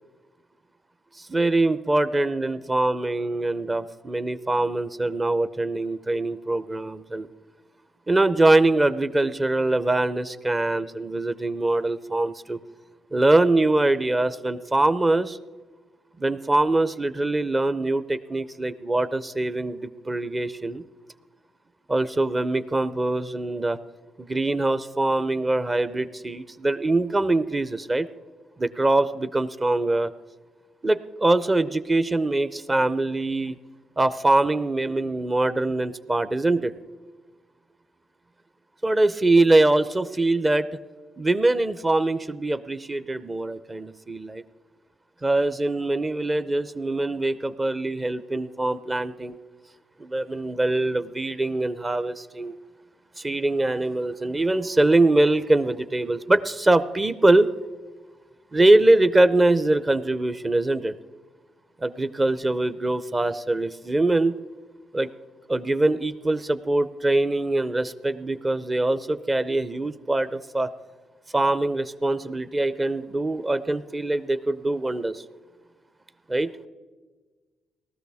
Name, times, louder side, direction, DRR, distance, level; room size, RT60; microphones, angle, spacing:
voice 1, 1.2-7.3 8.1-12.6 13.1-15.4 16.2-20.8 21.9-23.8 24.2-28.1 28.6-30.1 30.8-33.6 34.0-36.7 38.8-40.7 41.2-44.4 45.2-49.4 50.0-52.5 53.2-57.5 58.5-60.9 61.8-64.4 64.9-65.1 65.5-70.7 71.3-75.2 76.3-76.5, right 2 dB, 25° right, 12 dB, 0.6 m, -23 dB
19.0 x 13.0 x 3.5 m, 1.3 s
cardioid pair, 90°, 0 cm